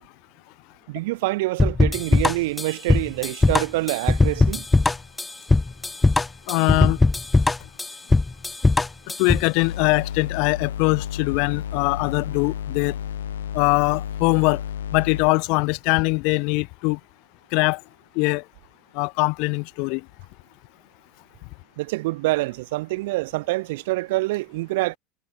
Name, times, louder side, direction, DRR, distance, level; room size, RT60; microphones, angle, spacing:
voice 1, 0.9-4.6 21.8-25.0, right 20 dB, 70° right, 1.4 m, -26 dB
sound 1, 1.6-9.5, left 3 dB, 15° left, 2.7 m, -20 dB
voice 2, 6.5-7.0 9.2-13.0 13.5-14.6 14.9-17.0 17.5-17.8 18.1-18.4 18.9-20.0, left 32 dB, 60° left, 4.5 m, -22 dB
sound 2, 9.6-15.3, left 10 dB, 80° left, 1.2 m, -32 dB
hypercardioid pair, 75°, 0 cm